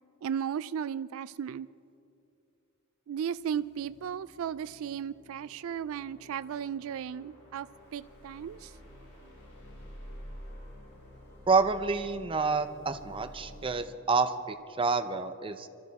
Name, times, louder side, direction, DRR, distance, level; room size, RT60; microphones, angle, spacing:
voice 1, 0.2-1.7 3.1-8.8, right 8 dB, 65° right, 15 dB, 0.3 m, -35 dB
sound 1, 3.3-13.9, equal, 55° left, 4.0 m, -50 dB
voice 2, 11.5-15.7, right 4 dB, 25° right, 8 dB, 0.6 m, -28 dB
25.0 x 13.0 x 4.1 m, 2.7 s
head